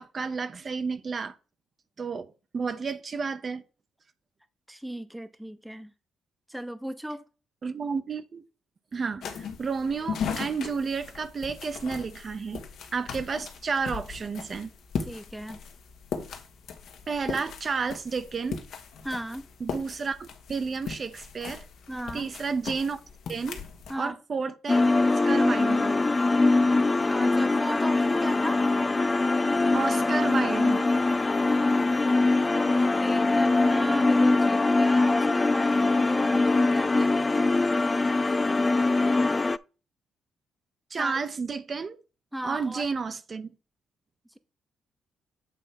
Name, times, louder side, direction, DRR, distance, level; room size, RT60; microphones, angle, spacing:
voice 1, 0.0-1.3 2.0-3.6 7.6-8.4 8.9-12.6 12.9-14.7 17.1-18.6 19.6-21.7 22.1-23.0 23.3-23.6 24.0-24.9 25.2-26.0 29.7-30.9 40.9-42.0 42.4-43.5, right 5 dB, 45° right, 0.8 m, -31 dB
voice 2, 4.7-5.9 6.5-7.2 15.1-15.6 19.0-19.5 21.9-22.3 23.9-24.2 27.0-28.6 31.7-37.1 41.0-41.1 42.3-42.9, equal, 5° right, 0.8 m, -36 dB
sound 1, 9.2-23.9, left 6 dB, 75° left, 1.4 m, -38 dB
sound 2, 24.7-39.6, left 3 dB, 25° left, 0.4 m, -23 dB
8.3 x 3.2 x 5.9 m
supercardioid pair, 70°, 0 cm